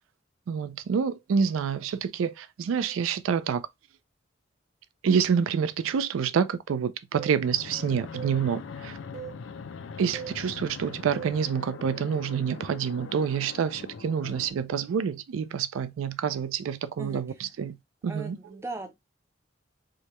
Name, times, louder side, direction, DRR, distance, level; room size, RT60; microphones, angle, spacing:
voice 1, 0.5-3.7 5.0-9.0 10.0-17.8 18.0-18.4, right 7 dB, 85° right, 0.3 m, -27 dB
sound 1, 7.1-7.4 8.1-8.4 9.1-9.4 10.1-10.4 11.1-11.4 12.1-12.5, right 8 dB, 65° right, 2.2 m, -40 dB
Fixed-wing aircraft airplane, 7.4-14.5, left 5 dB, 75° left, 0.4 m, -42 dB
voice 2, 18.1-18.9, right 2 dB, 15° right, 0.5 m, -38 dB
4.7 x 2.2 x 2.9 m
head